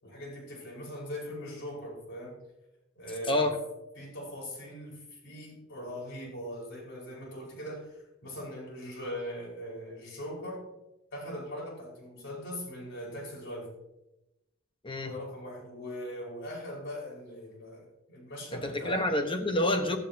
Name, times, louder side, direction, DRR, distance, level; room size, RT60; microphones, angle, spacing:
voice 1, 0.0-2.4 2.9-3.6 4.0-10.7 11.1-13.7 15.0-19.1, equal, 60° left, -2 dB, 5.1 m, -40 dB
voice 2, 14.8-15.2 18.5-20.0, left 1 dB, 25° left, 6 dB, 1.2 m, -28 dB
15.5 x 12.5 x 2.9 m, 0.93 s
head